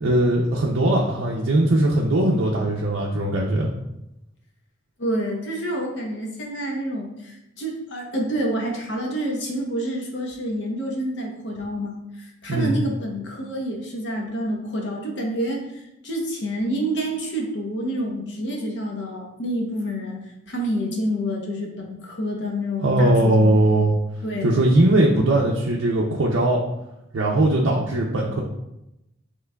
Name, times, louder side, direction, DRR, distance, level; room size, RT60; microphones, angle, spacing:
voice 1, 0.0-3.7 12.5-12.8 22.8-23.9 24.4-26.6 27.1-28.4, right 1 dB, 75° right, -3 dB, 0.5 m, -19 dB
voice 2, 5.0-20.2 20.5-23.8 24.2-24.6, equal, 60° left, 0 dB, 0.8 m, -28 dB
5.7 x 3.1 x 2.2 m, 0.88 s
head